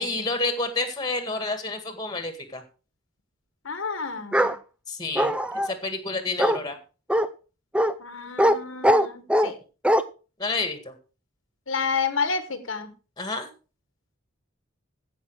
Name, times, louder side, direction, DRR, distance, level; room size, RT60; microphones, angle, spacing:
voice 1, 0.0-2.6 4.3-4.5 4.9-5.4 5.6-6.8 10.4-10.9 13.2-13.5, left 3 dB, 20° left, 8 dB, 1.9 m, -29 dB
voice 2, 3.6-4.5 8.0-9.6 11.7-12.9, left 5 dB, 65° left, 10 dB, 1.3 m, -30 dB
Bark, 4.3-4.6 5.2-5.7 6.4-6.6 7.1-7.3 7.7-7.9 8.4-8.6 8.8-9.5 9.8-10.0, equal, 5° right, 0.5 m, -20 dB
15.5 x 6.0 x 4.7 m, 0.34 s
head